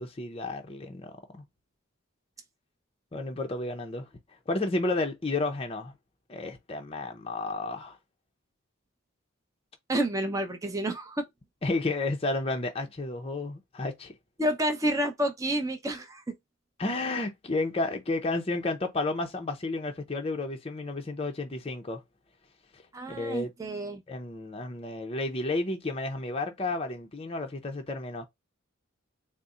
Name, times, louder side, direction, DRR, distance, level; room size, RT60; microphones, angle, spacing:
voice 1, 0.0-1.4 3.1-4.1 4.5-5.9 6.3-8.0 11.6-14.1 16.8-22.0 23.1-23.5 24.1-28.3, left 2 dB, 25° left, 0.5 m, -32 dB
voice 2, 9.9-11.3 14.4-16.3 22.9-24.0, right 1 dB, 15° right, 0.6 m, -29 dB
4.1 x 2.0 x 3.6 m
head